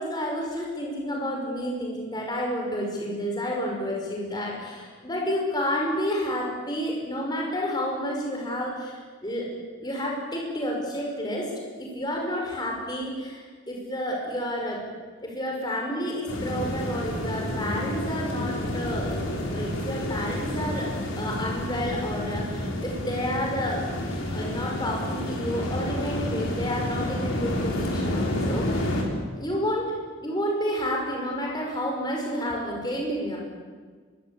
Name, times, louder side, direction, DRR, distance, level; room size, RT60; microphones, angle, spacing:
voice 1, 0.0-9.5 9.8-11.5 11.8-14.8 15.2-19.1 19.5-20.9 21.2-23.8 24.3-28.9 29.4-29.9 30.2-33.4, equal, 20° left, -1 dB, 5.6 m, -30 dB
sound 1, 16.3-29.0, left 1 dB, 80° left, 5.7 m, -29 dB
24.0 x 23.5 x 8.6 m, 1.5 s
head